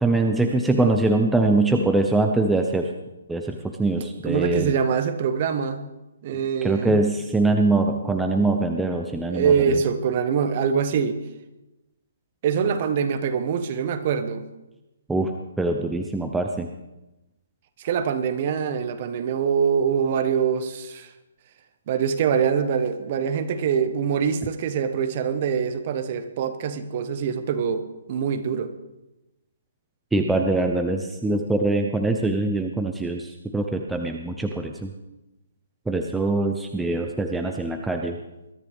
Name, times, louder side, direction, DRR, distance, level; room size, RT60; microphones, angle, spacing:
voice 1, 0.0-2.9 3.3-4.7 6.6-9.5 15.1-15.3 15.6-16.7 30.1-34.9 35.9-38.2, right 2 dB, 5° right, 3 dB, 0.7 m, -23 dB
voice 2, 4.2-5.8 6.2-7.0 9.3-11.2 12.4-14.4 17.8-21.1 21.9-28.7, right 7 dB, 40° right, 9 dB, 1.3 m, -24 dB
22.0 x 13.0 x 3.6 m, 0.99 s
hypercardioid pair, 160°, 0 cm